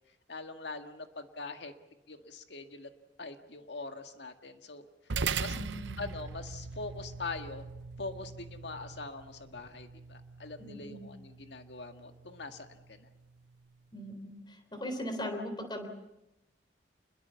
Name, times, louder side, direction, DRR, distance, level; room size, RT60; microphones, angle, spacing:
voice 1, 0.3-1.7 2.1-2.9 3.2-4.8 5.4-5.6 6.0-7.7 8.0-13.1, left 3 dB, 70° left, 7 dB, 1.9 m, -43 dB
sound 1, 5.1-13.8, right 5 dB, 85° right, 0.8 m, -41 dB
voice 2, 5.5-6.0 10.6-11.1 13.9-15.9, equal, 25° left, 6 dB, 3.9 m, -39 dB
28.0 x 21.5 x 7.1 m, 0.91 s
head